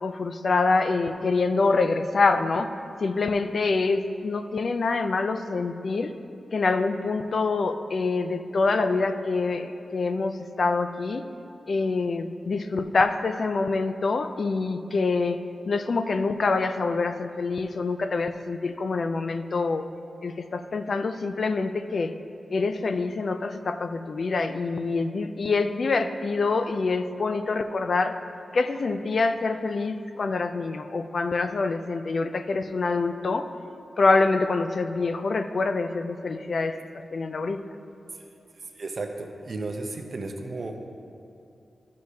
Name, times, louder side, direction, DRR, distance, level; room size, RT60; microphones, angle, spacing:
voice 1, 0.0-2.7 3.0-6.1 6.5-11.2 11.7-15.4 15.7-19.9 20.2-22.1 22.5-28.2 28.5-33.5 34.0-37.6, left 3 dB, 60° left, 9 dB, 0.3 m, -26 dB
voice 2, 38.7-40.8, right 3 dB, 55° right, 4 dB, 0.7 m, -34 dB
11.5 x 6.3 x 2.8 m, 2.6 s
wide cardioid pair, 85°, 0 cm